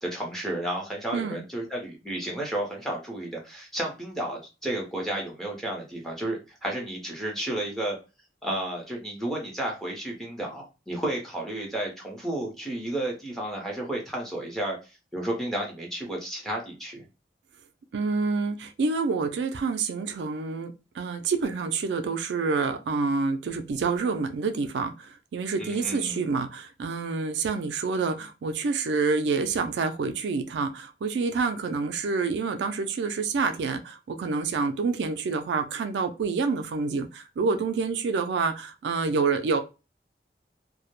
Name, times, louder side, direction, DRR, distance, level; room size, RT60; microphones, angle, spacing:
voice 1, 0.0-8.0 8.4-14.8 15.1-17.0 25.6-26.2, right 1 dB, ahead, 0.7 m, -32 dB
voice 2, 1.1-1.4 17.9-39.6, right 4 dB, 80° right, 0.3 m, -27 dB
2.2 x 2.0 x 2.9 m
head